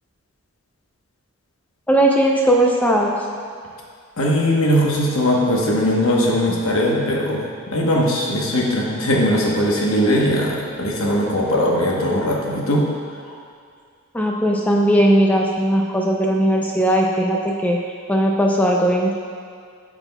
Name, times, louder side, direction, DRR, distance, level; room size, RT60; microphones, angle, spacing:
voice 1, 1.9-3.1 14.1-17.8 18.1-19.1, right 1 dB, 5° left, -1 dB, 0.3 m, -18 dB
voice 2, 4.2-12.8 13.3-13.4, equal, 70° left, -2 dB, 1.0 m, -19 dB
8.7 x 6.0 x 2.2 m, 2.2 s
head